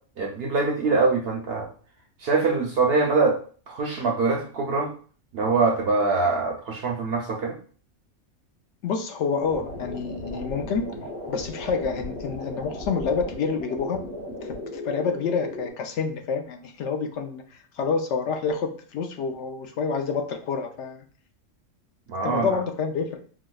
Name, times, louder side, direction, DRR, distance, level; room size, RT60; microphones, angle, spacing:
voice 1, 0.2-1.7 2.2-3.4 3.7-4.9 5.3-7.6 22.1-22.6, right 3 dB, 65° right, 1 dB, 0.6 m, -23 dB
voice 2, 8.8-10.8 11.3-14.0 14.4-21.0 22.2-23.2, left 5 dB, 70° left, 5 dB, 0.8 m, -28 dB
sound 1, 9.4-15.7, left 1 dB, 40° left, 0.8 m, -36 dB
4.7 x 2.0 x 2.3 m, 0.43 s
omnidirectional pair, 1.4 m